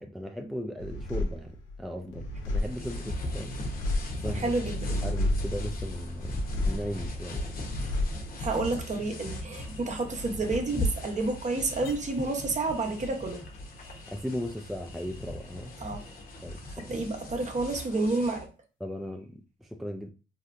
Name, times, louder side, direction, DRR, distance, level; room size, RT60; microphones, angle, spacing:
voice 1, 0.0-3.6 4.1-4.5 4.9-7.5 14.1-15.7 16.4-16.9 18.8-20.1, equal, ahead, 0.4 m, -37 dB
sound 1, 0.8-15.7 15.9-16.8, left 1 dB, 85° left, 0.7 m, -35 dB
sound 2, 2.5-18.5, left 1 dB, 45° left, 0.9 m, -38 dB
voice 2, 4.3-5.0 8.4-13.4 15.8-16.0 16.8-18.5, right 3 dB, 35° right, 0.8 m, -30 dB
3.2 x 2.8 x 2.4 m
cardioid pair, 90°, 20 cm